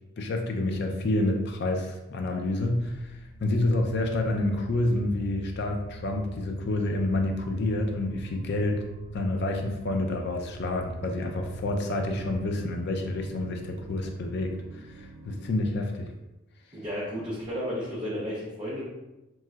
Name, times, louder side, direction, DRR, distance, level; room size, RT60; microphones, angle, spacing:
voice 1, 0.2-8.8 9.1-16.1, left 2 dB, 50° left, 3 dB, 0.4 m, -28 dB
sound 1, 2.6-15.6, right 1 dB, 75° right, 0.3 m, -45 dB
voice 2, 16.7-18.8, equal, 20° right, -8 dB, 0.5 m, -33 dB
3.1 x 2.6 x 2.3 m, 0.99 s
head